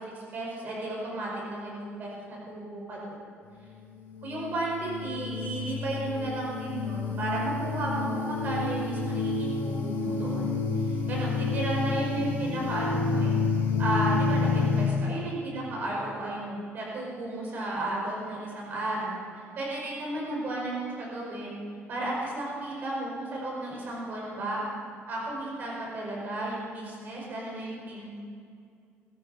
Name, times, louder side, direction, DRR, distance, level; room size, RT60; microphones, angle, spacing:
voice 1, 0.1-3.2 4.2-10.5 10.9-13.4 13.8-21.6 21.9-24.6 25.1-28.2, right 2 dB, 40° right, -3 dB, 5.2 m, -33 dB
sound 1, 3.8-14.9, left 4 dB, 55° left, 4.2 m, -29 dB
21.5 x 13.0 x 4.3 m, 2.3 s
cardioid pair, 180°, 5 cm